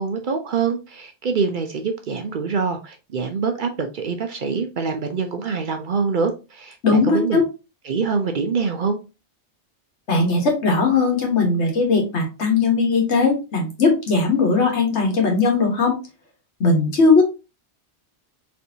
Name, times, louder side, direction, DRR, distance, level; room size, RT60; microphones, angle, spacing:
voice 1, 0.0-7.4 7.9-9.0, right 5 dB, 55° right, 0.7 m, -25 dB
voice 2, 6.8-7.4 10.1-16.0 16.6-17.2, left 4 dB, 80° left, 1.5 m, -18 dB
4.2 x 3.3 x 2.7 m
omnidirectional pair, 1.1 m